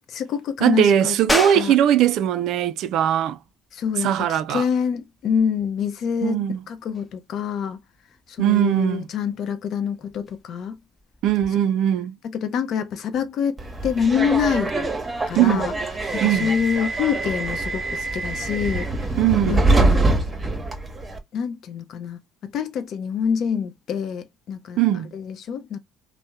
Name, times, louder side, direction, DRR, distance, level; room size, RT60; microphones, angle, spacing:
voice 1, 0.0-1.2 1.5-1.7 3.7-7.8 8.4-10.8 12.2-14.8 15.3-15.7 16.1-18.9 19.5-20.0 21.3-24.8 25.1-25.8, left 7 dB, 60° left, 0.6 m, -26 dB
voice 2, 0.6-3.4 4.0-4.6 6.2-6.6 8.4-9.1 11.2-12.1 15.3-15.7 16.2-16.5 19.2-19.6 24.8-25.1, right 11 dB, 70° right, 0.3 m, -20 dB
sound 1, 1.3-11.5, left 1 dB, 10° left, 0.8 m, -35 dB
Subway metro underground, 13.6-21.2, right 2 dB, 25° right, 0.8 m, -24 dB
2.7 x 2.0 x 3.3 m
hypercardioid pair, 60°, 0 cm